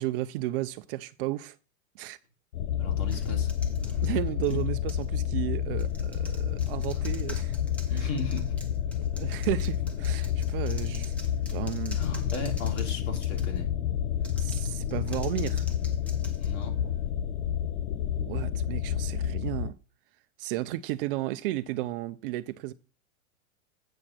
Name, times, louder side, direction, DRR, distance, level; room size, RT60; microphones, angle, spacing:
voice 1, 0.0-1.6 2.0-2.2 4.0-7.5 7.9-8.1 9.1-12.0 14.4-15.7 18.2-19.8 20.4-22.7, right 16 dB, 45° right, 0.5 m, -33 dB
sound 1, 2.5-19.7, left 10 dB, 80° left, 0.7 m, -29 dB
voice 2, 2.8-3.5 7.9-8.5 12.0-13.7 16.4-16.8, left 2 dB, 55° left, 3.1 m, -35 dB
sound 2, 3.1-5.1 5.7-13.7 14.2-17.1, equal, 5° left, 1.2 m, -48 dB
8.7 x 4.7 x 5.9 m
supercardioid pair, 135°, 42 cm